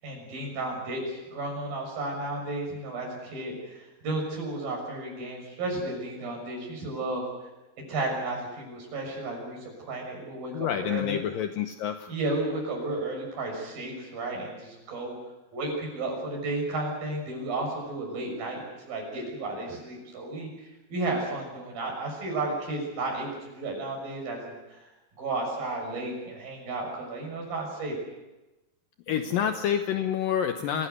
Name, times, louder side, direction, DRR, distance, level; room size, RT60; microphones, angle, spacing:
voice 1, 0.0-7.2 7.9-11.2 12.1-15.1 15.5-24.8 25.2-28.0 29.1-29.5 30.7-30.8, right 2 dB, 60° right, 0 dB, 8.2 m, -33 dB
voice 2, 10.5-12.1 29.1-30.9, left 9 dB, 70° left, 7 dB, 2.4 m, -28 dB
26.0 x 16.5 x 8.2 m, 1.0 s
omnidirectional pair, 4.6 m